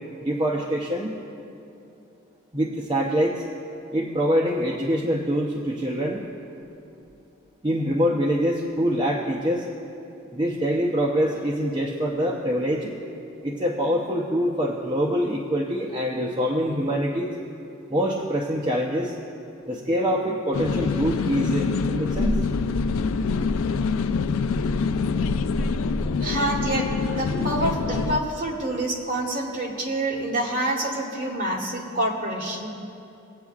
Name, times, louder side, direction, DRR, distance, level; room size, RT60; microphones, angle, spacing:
voice 1, 0.2-1.1 2.5-3.4 3.9-6.2 7.6-9.7 10.3-13.0 13.4-17.3 17.9-19.1 19.7-22.4, equal, 20° right, -2 dB, 0.6 m, -24 dB
sound 1, 20.5-28.2, left 5 dB, 85° left, 0.3 m, -26 dB
sound 2, 22.1-28.1, equal, 55° left, 0.8 m, -31 dB
voice 2, 26.2-26.9 27.2-32.7, right 1 dB, 45° right, -1 dB, 1.5 m, -27 dB
19.5 x 8.2 x 2.4 m, 2.8 s
head